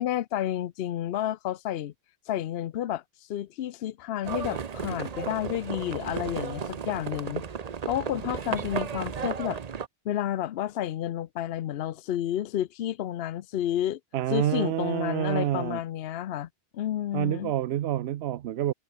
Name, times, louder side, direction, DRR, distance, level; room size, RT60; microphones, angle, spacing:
voice 1, 0.0-1.9 2.3-7.4 7.8-9.6 10.0-14.0 14.3-17.5, left 11 dB, 75° left, 0.8 m, -31 dB
Livestock farm animals working animals, 4.2-9.9, right 6 dB, 45° right, 0.8 m, -34 dB
voice 2, 14.1-15.8 17.1-18.7, right 12 dB, 80° right, 0.9 m, -28 dB
omnidirectional pair, 1.1 m